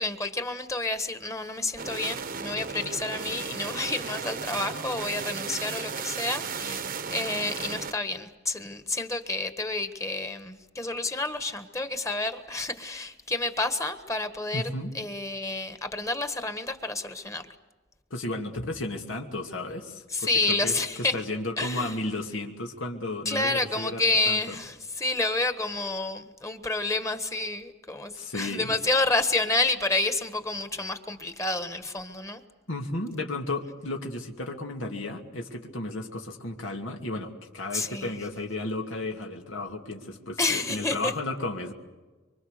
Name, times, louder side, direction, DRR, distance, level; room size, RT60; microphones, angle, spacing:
voice 1, 0.0-14.6 14.9-17.5 20.1-21.2 21.6-22.0 23.2-32.4 37.7-38.1 40.4-41.1, left 2 dB, 15° left, 9 dB, 1.4 m, -29 dB
sound 1, 1.8-7.9, right 5 dB, 45° right, 1.0 m, -35 dB
voice 2, 14.5-14.9 18.1-20.3 20.6-20.8 21.1-24.5 28.1-28.7 32.7-41.7, left 2 dB, 90° left, 2 dB, 2.6 m, -33 dB
25.0 x 25.0 x 6.7 m, 1.2 s
head